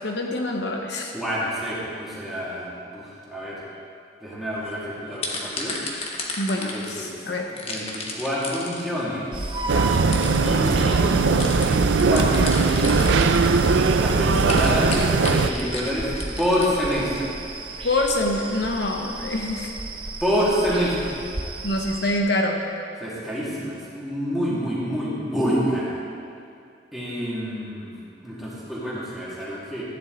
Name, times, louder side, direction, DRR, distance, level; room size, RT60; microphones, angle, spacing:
voice 1, 0.0-1.1 6.4-7.5 17.8-19.7 21.6-22.6, left 1 dB, 60° left, 1 dB, 0.9 m, -25 dB
voice 2, 1.1-3.6 4.2-5.8 6.7-7.1 7.5-9.3 10.2-11.2 11.6-12.9 14.0-16.1 16.4-17.3 20.2-21.2 23.0-26.0 26.9-28.0 28.2-29.8, equal, ahead, -8 dB, 2.3 m, -27 dB
sound 1, 4.6-4.7 5.1-7.1 7.6-9.0 9.7-9.8 10.1-10.5 11.4-13.8 14.4-17.2, left 3 dB, 30° left, 1.2 m, -33 dB
sound 2, 9.3-22.2, right 2 dB, 25° right, 0.7 m, -33 dB
sound 3, 9.7-15.5, right 4 dB, 75° right, 0.5 m, -19 dB
14.0 x 9.8 x 3.9 m, 2.4 s
head